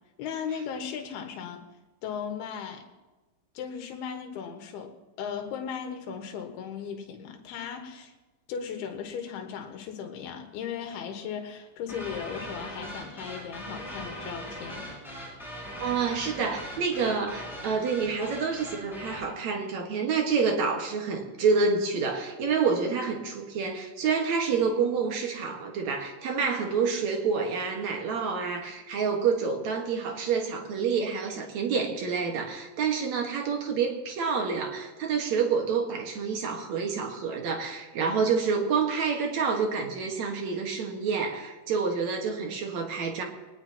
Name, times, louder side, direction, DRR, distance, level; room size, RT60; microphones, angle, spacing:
voice 1, 0.2-1.6 2.0-2.8 3.5-4.9 5.2-8.1 8.5-14.9, left 7 dB, 80° left, 4 dB, 3.3 m, -37 dB
sound 1, 11.9-19.3, equal, ahead, 6.9 m, -40 dB
voice 2, 15.8-43.2, right 5 dB, 55° right, 2 dB, 2.4 m, -28 dB
21.5 x 19.0 x 2.9 m, 1.2 s
omnidirectional pair, 4.5 m